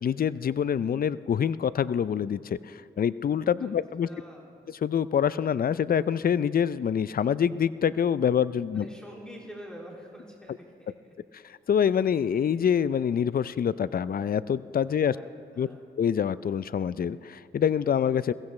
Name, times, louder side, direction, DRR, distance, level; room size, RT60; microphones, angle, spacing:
voice 1, 0.0-4.1 4.7-8.9 11.4-15.2 15.6-15.7 16.0-18.3, left 8 dB, 45° left, 17 dB, 0.4 m, -26 dB
voice 2, 4.0-4.5 8.7-10.5 10.8-10.9 15.0-15.3 15.5-15.8, equal, 5° left, -3 dB, 2.7 m, -46 dB
22.0 x 16.0 x 3.2 m, 2.5 s
cardioid pair, 55°, 21 cm